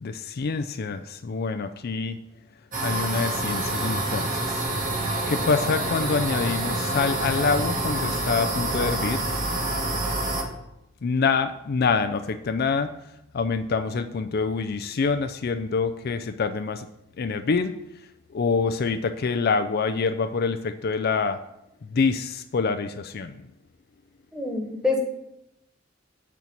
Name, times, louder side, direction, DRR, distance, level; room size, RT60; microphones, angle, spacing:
voice 1, 0.0-2.2 2.8-4.7 5.3-9.2 11.0-12.9 13.3-16.9 17.2-17.7 18.3-21.4 21.8-23.4, left 4 dB, 50° left, 8 dB, 0.4 m, -26 dB
sound 1, 2.7-10.4, right 1 dB, 40° right, 1.5 m, -27 dB
voice 2, 24.3-25.0, left 3 dB, 5° right, 0 dB, 1.4 m, -26 dB
8.3 x 4.5 x 7.0 m, 0.86 s
head